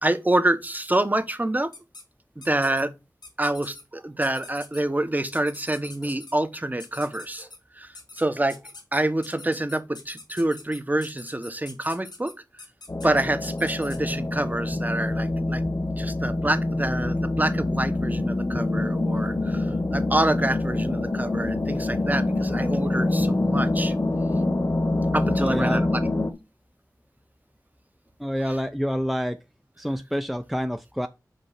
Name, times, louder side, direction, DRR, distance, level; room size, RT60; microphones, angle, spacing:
voice 1, 0.0-1.7 2.4-2.9 3.4-7.5 7.7-8.6 8.9-12.3 13.0-15.6 16.0-23.9 25.1-26.1 28.5-28.6, right 1 dB, 25° right, 1.1 m, -27 dB
sound 1, 1.7-2.0 2.4-2.8 3.2-3.8 4.2-4.8 5.3-6.3 6.8-7.6 7.9-8.2 8.5-14.1, left 3 dB, 85° left, 2.2 m, -44 dB
sound 2, 12.9-26.3, left 2 dB, 45° left, 1.2 m, -25 dB
voice 2, 25.4-25.9 28.2-29.4 29.8-31.1, equal, ahead, 0.6 m, -27 dB
5.4 x 5.2 x 5.6 m
wide cardioid pair, 55°, 7 cm